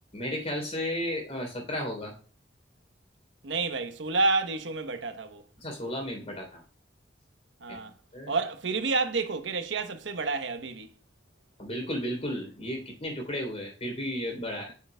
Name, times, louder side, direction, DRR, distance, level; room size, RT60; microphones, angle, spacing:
voice 1, 0.1-2.1 5.6-6.6 8.1-8.3 11.6-14.7, equal, 35° left, 3.2 m, -33 dB
voice 2, 3.4-5.4 7.6-7.9 8.3-10.9 14.5-14.7, right 3 dB, 75° right, 0.9 m, -29 dB
8.5 x 6.6 x 2.2 m
head